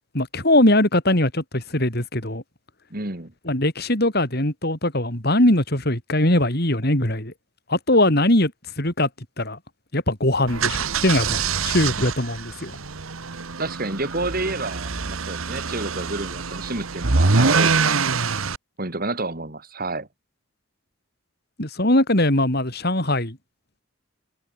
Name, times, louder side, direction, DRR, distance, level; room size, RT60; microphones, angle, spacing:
voice 1, 0.1-2.4 3.4-7.3 7.7-8.5 8.8-9.1 9.4-9.6 9.9-12.8 21.6-23.4, left 1 dB, 50° left, 4.2 m, -21 dB
voice 2, 2.9-3.3 13.6-18.0 18.8-20.1, right 2 dB, 45° right, 2.4 m, -29 dB
sound 1, 10.5-18.6, right 4 dB, 80° right, 1.4 m, -24 dB
head